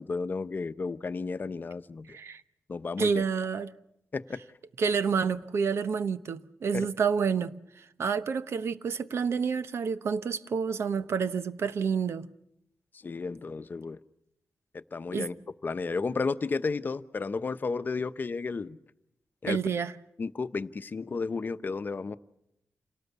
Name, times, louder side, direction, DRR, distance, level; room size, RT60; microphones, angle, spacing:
voice 1, 0.0-2.2 2.7-3.2 4.1-4.4 6.7-6.9 13.0-14.0 14.7-15.3 15.6-18.8 19.4-19.6 20.2-22.2, left 4 dB, 45° left, 0.9 m, -32 dB
voice 2, 2.1-2.4 3.0-3.7 4.8-12.3 15.1-15.3 19.5-19.9, right 6 dB, 75° right, 1.0 m, -29 dB
28.0 x 18.5 x 8.2 m
wide cardioid pair, 90°, 4 cm